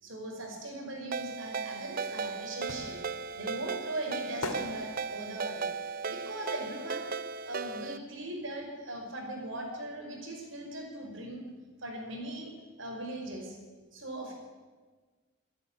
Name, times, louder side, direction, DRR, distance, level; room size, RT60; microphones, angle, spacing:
voice 1, 0.0-3.0 3.3-5.7 6.1-7.1 7.4-11.4 11.8-12.5 12.8-13.6 13.9-14.3, right 1 dB, 60° right, 1 dB, 5.3 m, -39 dB
Ringtone, 1.1-8.0, right 5 dB, 40° right, 0.6 m, -36 dB
sound 1, 1.8-7.7 7.9-9.5 9.8-9.9, left 2 dB, 85° left, 2.7 m, -43 dB
25.0 x 10.5 x 9.8 m, 1.4 s
head